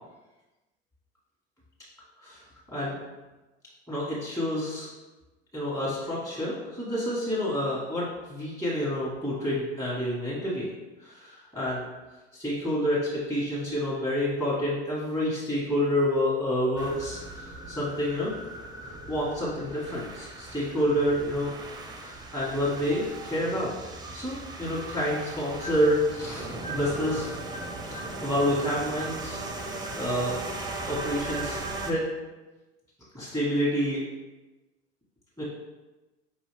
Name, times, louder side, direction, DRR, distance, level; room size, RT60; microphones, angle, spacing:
voice 1, 3.9-4.9 5.5-10.7 11.0-11.8 12.3-18.3 19.1-21.5 22.0-27.3 28.2-30.4 30.9-32.1 33.1-34.0 35.4-35.5, equal, 10° left, -8 dB, 1.4 m, -28 dB
sound 1, 16.8-31.9, right 2 dB, 15° right, 0.6 m, -38 dB
5.1 x 2.7 x 3.3 m, 1.1 s
supercardioid pair, 90°, 30 cm